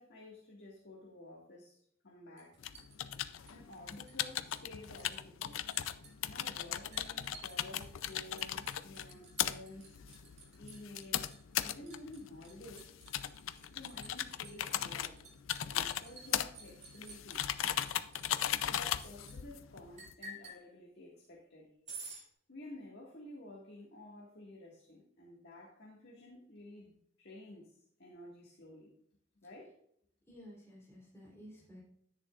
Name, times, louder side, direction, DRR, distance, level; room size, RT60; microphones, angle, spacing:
voice 1, 0.0-1.8 2.0-2.6 3.5-5.6 6.3-10.0 10.6-12.9 13.7-15.2 15.7-17.5 18.7-21.7 22.5-27.7 28.0-28.9 29.4-29.7, left 1 dB, 55° left, -2 dB, 1.9 m, -52 dB
Liquid, 2.4-4.3 4.5-5.2 5.4-19.4 20.0-20.6 21.9-22.2, right 3 dB, 35° right, 3.8 m, -52 dB
sound 1, 2.6-20.1, left 10 dB, 75° left, 0.5 m, -38 dB
voice 2, 30.3-31.8, equal, 15° left, -5 dB, 3.3 m, -53 dB
11.0 x 10.0 x 2.5 m, 0.68 s
head